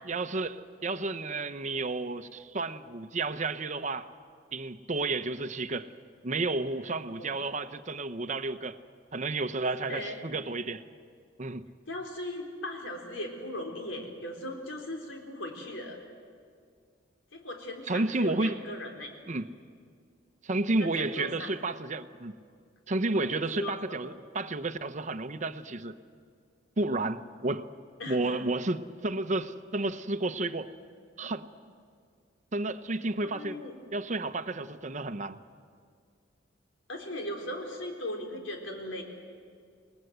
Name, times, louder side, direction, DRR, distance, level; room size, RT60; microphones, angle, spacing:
voice 1, 0.1-4.1 4.5-5.9 6.2-8.8 9.1-10.8 11.4-11.7 17.9-18.6 19.3-19.5 20.4-22.3 22.9-26.0 26.8-27.7 28.1-30.7 31.2-31.5 32.5-33.6 33.9-35.4, right 2 dB, 40° right, 11 dB, 0.8 m, -31 dB
voice 2, 9.9-10.2 11.9-16.0 17.3-19.1 20.8-21.5 23.1-24.0 28.0-28.4 33.2-33.8 36.9-39.0, left 1 dB, 85° left, 2 dB, 3.9 m, -38 dB
28.0 x 19.5 x 8.1 m, 2.1 s
head